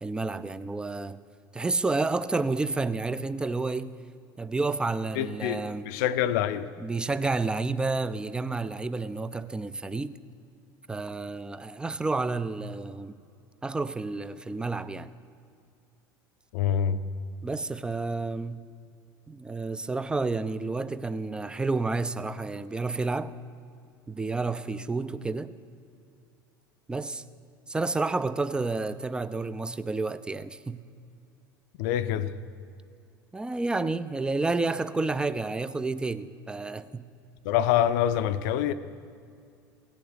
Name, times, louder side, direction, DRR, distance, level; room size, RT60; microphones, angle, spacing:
voice 1, 0.0-1.2 1.5-3.9 4.4-5.9 6.8-10.2 10.9-13.2 13.6-15.1 17.4-18.6 19.3-23.3 24.1-25.5 26.9-27.2 27.7-30.8 33.3-37.0, right 3 dB, 10° right, 0.4 m, -30 dB
voice 2, 5.2-6.7 16.5-17.0 31.8-32.3 37.4-38.7, left 10 dB, 55° left, 0.5 m, -26 dB
17.0 x 7.2 x 7.9 m
figure-of-eight pair, 70°, 11 cm